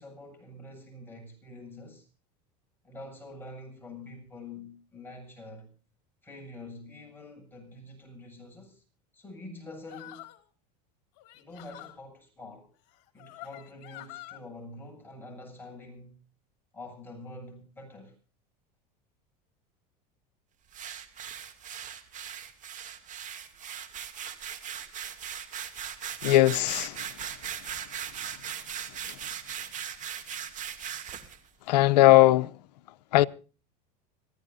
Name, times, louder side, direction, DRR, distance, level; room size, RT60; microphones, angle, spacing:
voice 1, 0.0-2.1 2.8-5.7 6.2-8.8 9.1-10.3 11.3-12.7 13.1-16.2 16.7-18.2, left 2 dB, 10° left, 7.7 m, -46 dB
sound 1, 9.9-10.4 11.2-12.0 12.9-14.4, left 17 dB, 60° left, 2.8 m, -46 dB
sound 2, 20.7-31.4, right 9 dB, 40° right, 2.6 m, -39 dB
voice 2, 26.2-26.9 31.7-32.5 33.1-33.3, left 16 dB, 85° left, 0.7 m, -19 dB
26.5 x 15.0 x 2.7 m
supercardioid pair, 115°, 21 cm